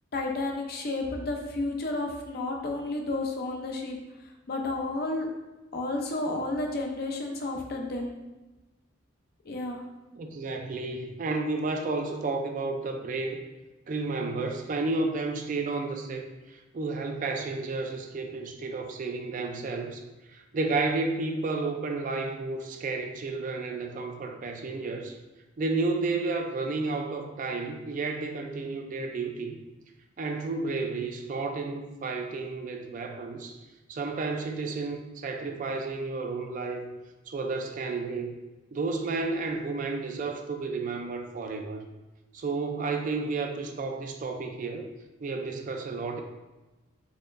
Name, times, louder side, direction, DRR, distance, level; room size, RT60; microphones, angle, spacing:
voice 1, 0.1-4.0 4.5-5.3 5.7-8.2 9.4-9.8, left 2 dB, 50° left, 2 dB, 0.5 m, -31 dB
voice 2, 10.1-13.4 13.9-25.2 25.6-29.5 30.2-33.6 33.9-36.9 37.3-38.3 38.7-41.8 42.3-44.9 45.2-46.2, right 3 dB, 40° right, 4 dB, 0.3 m, -32 dB
4.2 x 3.0 x 2.5 m, 1.1 s
head